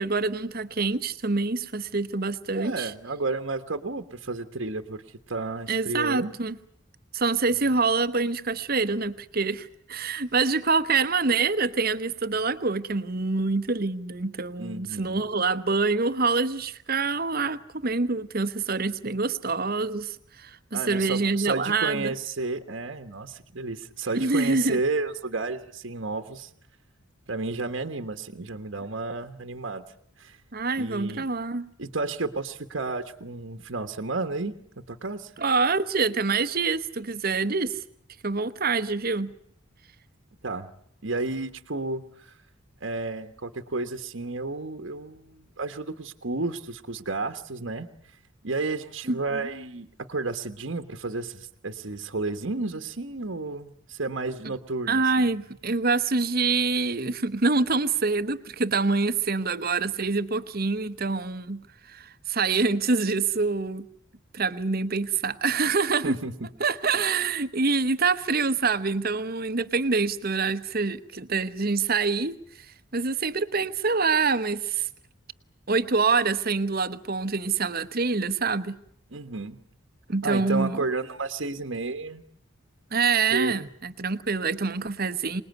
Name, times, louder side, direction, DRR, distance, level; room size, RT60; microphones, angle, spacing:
voice 1, 0.0-2.9 5.7-6.6 7.1-22.1 24.1-24.8 30.5-31.7 35.4-37.8 38.2-39.3 49.1-49.4 54.4-54.5 54.9-61.6 61.9-63.9 64.3-66.2 66.6-72.4 72.9-74.9 75.7-78.8 80.1-80.8 82.9-85.4, right 4 dB, 45° right, 13 dB, 1.0 m, -26 dB
voice 2, 2.5-6.3 14.6-15.2 20.7-26.5 27.3-29.8 30.2-30.4 30.8-31.2 31.8-35.3 40.4-40.7 41.0-42.3 42.8-47.9 48.4-55.3 66.0-66.5 79.1-79.6 80.2-82.2 83.3-83.6, right 3 dB, 60° right, 7 dB, 1.3 m, -32 dB
26.0 x 20.0 x 9.3 m, 0.70 s
head